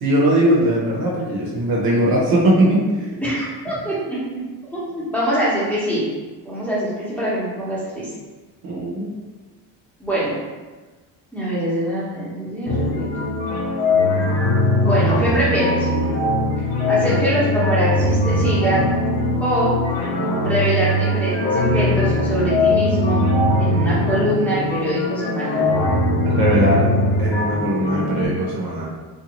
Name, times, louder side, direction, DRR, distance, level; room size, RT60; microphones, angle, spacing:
voice 1, 0.0-3.1 8.6-9.1 26.2-26.9 27.2-28.9, right 1 dB, 55° right, -4 dB, 0.9 m, -19 dB
voice 2, 3.2-4.4 4.7-6.1 6.4-8.1 10.0-10.4 11.3-13.4 14.8-15.9 16.9-18.9 19.4-19.7 20.4-23.2 23.6-25.6, right 1 dB, 5° left, -10 dB, 0.9 m, -23 dB
sound 1, 12.7-28.3, left 1 dB, 80° left, 0.8 m, -20 dB
2.6 x 2.4 x 2.9 m, 1.3 s
cardioid pair, 120°, 43 cm